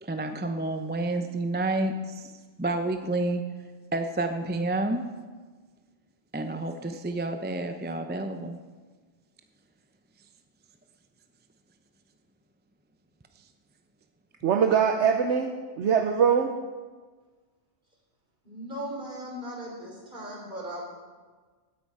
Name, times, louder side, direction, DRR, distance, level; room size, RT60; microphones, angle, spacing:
voice 1, 0.0-2.3 2.6-3.4 3.9-5.0 6.3-8.6, right 2 dB, 10° right, 6 dB, 0.5 m, -29 dB
voice 2, 14.4-16.5, right 7 dB, 70° right, 5 dB, 1.1 m, -23 dB
voice 3, 18.4-20.9, equal, 40° right, -2 dB, 3.7 m, -38 dB
17.0 x 9.7 x 4.8 m, 1.4 s
omnidirectional pair, 1.3 m